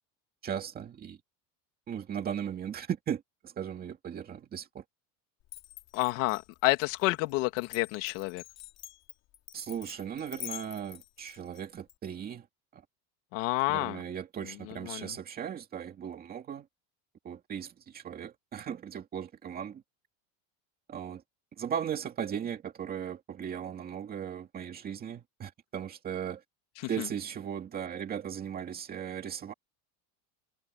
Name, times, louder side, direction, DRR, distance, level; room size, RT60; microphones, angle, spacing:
voice 1, 0.4-1.2 1.9-4.8 9.5-12.5 12.7-12.8 13.7-16.7 17.2-19.8 20.9-21.2 21.6-26.4 26.9-29.5, right 8 dB, 20° right, 2.3 m, -37 dB
Glass, 5.5-11.9, left 14 dB, 40° left, 4.5 m, -47 dB
voice 2, 5.9-8.4 13.3-14.0 14.8-15.1 27.0-27.1, left 22 dB, 65° left, 2.6 m, -29 dB
cardioid pair, 180°, 41 cm